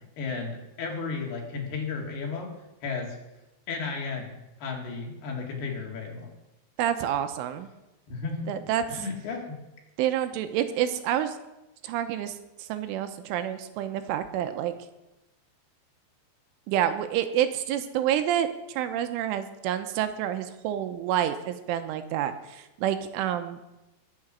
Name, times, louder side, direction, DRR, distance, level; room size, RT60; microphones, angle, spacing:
voice 1, 0.2-2.5 2.8-3.2 3.7-6.3 8.1-8.5 8.9-9.6, left 4 dB, 60° left, 0 dB, 4.0 m, -34 dB
voice 2, 6.8-7.7 8.5-9.0 10.0-11.4 11.8-14.7 16.7-23.7, right 10 dB, 85° right, 9 dB, 3.3 m, -28 dB
22.0 x 7.7 x 6.3 m, 0.96 s
omnidirectional pair, 5.7 m